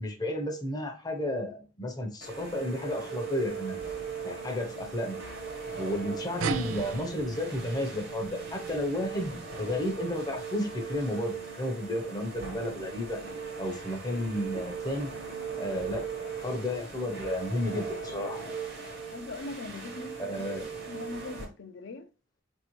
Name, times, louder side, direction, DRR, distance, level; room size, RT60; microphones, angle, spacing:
voice 1, 0.0-3.8 4.2-5.2 5.7-13.2 13.6-15.1 15.6-18.6 20.2-20.7, left 1 dB, 20° left, 0.6 m, -32 dB
sound 1, 2.2-21.5, right 5 dB, 55° right, 1.0 m, -39 dB
sound 2, 6.4-11.3, right 7 dB, 75° right, 0.3 m, -40 dB
voice 2, 19.1-20.3 20.9-22.1, left 3 dB, 60° left, 0.5 m, -41 dB
4.1 x 2.6 x 3.0 m
head